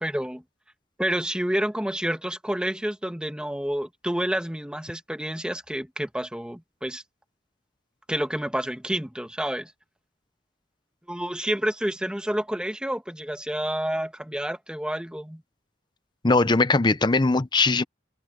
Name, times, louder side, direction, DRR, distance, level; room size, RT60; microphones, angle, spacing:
voice 1, 0.0-0.4 1.0-7.0 8.1-9.7 11.1-15.4, right 1 dB, 5° right, 1.5 m, -29 dB
voice 2, 16.2-17.8, left 3 dB, 25° left, 0.6 m, -20 dB
open air
head